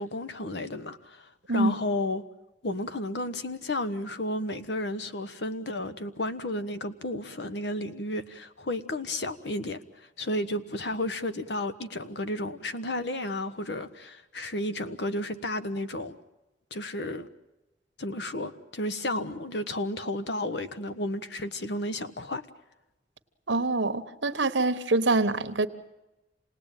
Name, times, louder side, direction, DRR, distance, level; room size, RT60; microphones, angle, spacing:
voice 1, 0.0-2.2 2.6-9.8 10.2-16.2 16.7-17.3 18.0-22.4, left 1 dB, 65° left, 1.2 m, -32 dB
voice 2, 23.5-25.7, right 2 dB, 75° right, 1.4 m, -25 dB
27.5 x 19.0 x 9.1 m
head